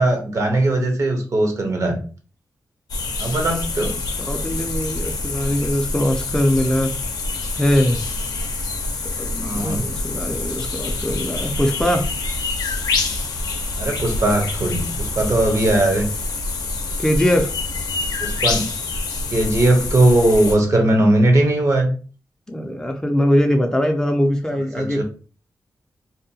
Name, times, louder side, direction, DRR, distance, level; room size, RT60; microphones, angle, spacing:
voice 1, 0.0-2.0 3.2-4.0 9.4-9.9 13.8-16.1 18.2-18.7 19.3-21.9 24.7-25.0, right 1 dB, 55° right, 3 dB, 0.7 m, -19 dB
sound 1, 2.9-20.5, left 3 dB, 90° left, 0.5 m, -26 dB
voice 2, 4.3-6.9 7.6-8.0 9.2-12.0 17.0-17.5 22.5-25.0, equal, 10° left, 3 dB, 0.3 m, -21 dB
2.7 x 2.1 x 2.7 m, 0.38 s
wide cardioid pair, 95°, 6 cm